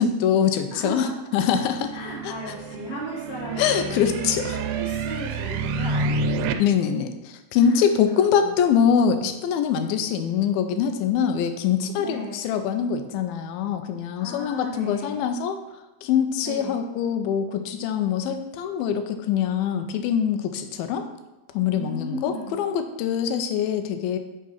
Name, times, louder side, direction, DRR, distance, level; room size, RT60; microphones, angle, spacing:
voice 1, 0.0-2.0 2.2-2.5 3.6-4.6 6.6-15.6 16.0-21.1 21.5-24.2, left 8 dB, 80° left, 8 dB, 2.4 m, -24 dB
voice 2, 0.7-1.1 1.9-6.5 7.5-8.5 12.0-12.4 14.2-15.2 16.4-16.8 21.7-22.6, right 1 dB, 35° left, -5 dB, 1.4 m, -36 dB
sound 1, 1.6-6.5, right 3 dB, 85° right, 2.6 m, -29 dB
8.4 x 3.8 x 5.7 m, 1.0 s
omnidirectional pair, 4.5 m